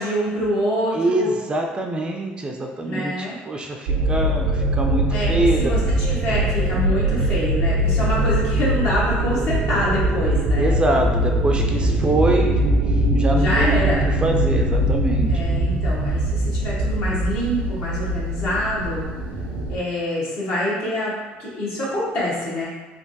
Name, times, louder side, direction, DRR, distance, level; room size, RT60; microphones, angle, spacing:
voice 1, 0.0-1.3 2.8-3.4 5.1-10.8 13.3-14.0 15.3-19.1 19.7-22.7, equal, 65° left, -6 dB, 1.2 m, -26 dB
voice 2, 0.9-5.7 10.6-12.6 12.9-13.8 14.2-15.4, right 2 dB, 25° right, 2 dB, 0.4 m, -24 dB
sound 1, 3.9-19.8, right 1 dB, 85° right, 0.5 m, -21 dB
3.3 x 2.4 x 2.6 m, 1.3 s
supercardioid pair, 90°, 4 cm